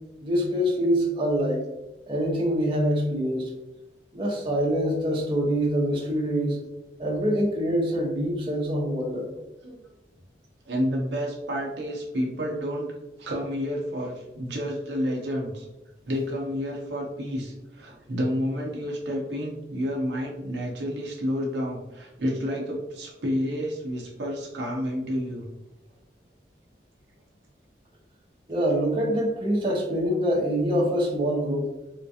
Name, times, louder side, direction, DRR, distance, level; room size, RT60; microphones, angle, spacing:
voice 1, 0.2-1.6 2.1-3.5 4.1-6.6 7.0-9.3 28.5-31.7, equal, 30° right, -5 dB, 0.9 m, -25 dB
voice 2, 10.7-12.9 13.2-15.7 16.0-25.5, equal, 80° right, -1 dB, 0.7 m, -30 dB
3.6 x 2.4 x 2.7 m, 0.97 s
head